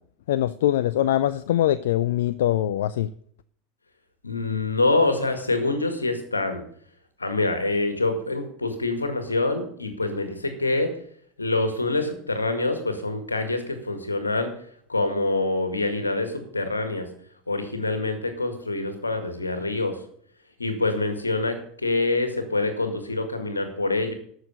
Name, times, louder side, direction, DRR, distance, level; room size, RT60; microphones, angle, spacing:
voice 1, 0.3-3.1, left 12 dB, 65° left, 16 dB, 0.4 m, -23 dB
voice 2, 4.2-6.6 7.2-10.9 11.4-14.5 14.9-17.1 17.5-20.0 20.6-24.1, left 2 dB, 85° left, 8 dB, 2.0 m, -25 dB
13.5 x 6.5 x 6.6 m, 0.63 s
figure-of-eight pair, 85°, 0 cm